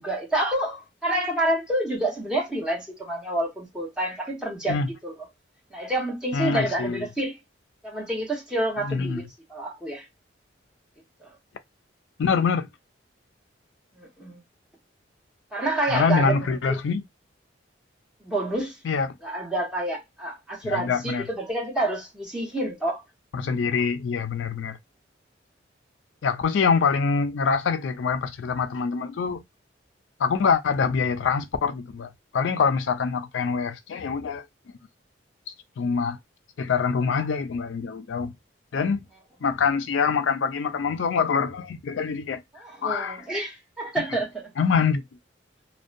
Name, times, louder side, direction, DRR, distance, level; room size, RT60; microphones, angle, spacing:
voice 1, 0.0-5.1 5.7-7.4 7.8-9.2 9.5-10.0 11.2-11.3 14.0-14.4 15.5-16.3 16.7-16.8 18.2-18.7 19.2-23.0 42.6-44.5, right 1 dB, 5° right, 1.0 m, -28 dB
voice 2, 6.3-7.1 8.8-9.2 12.2-12.7 15.9-17.0 18.8-19.1 20.6-21.3 23.3-24.8 26.2-29.4 30.2-34.4 35.8-36.2 36.6-38.3 38.7-39.0 39.4-42.4 42.8-43.2 44.1-44.2 44.6-45.0, left 5 dB, 75° left, 0.4 m, -25 dB
2.6 x 2.2 x 2.5 m
head